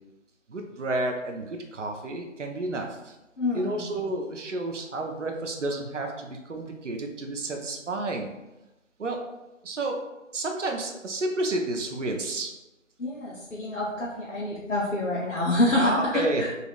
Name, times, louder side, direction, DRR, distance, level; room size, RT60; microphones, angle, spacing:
voice 1, 0.5-3.1 3.5-8.3 9.0-9.2 9.6-10.0 10.3-12.5 15.8-16.4, right 2 dB, 65° right, 3 dB, 0.6 m, -30 dB
voice 2, 3.4-4.0 13.0-16.5, left 1 dB, 75° left, -6 dB, 0.8 m, -27 dB
4.0 x 2.4 x 2.4 m, 0.98 s
figure-of-eight pair, 160°, 39 cm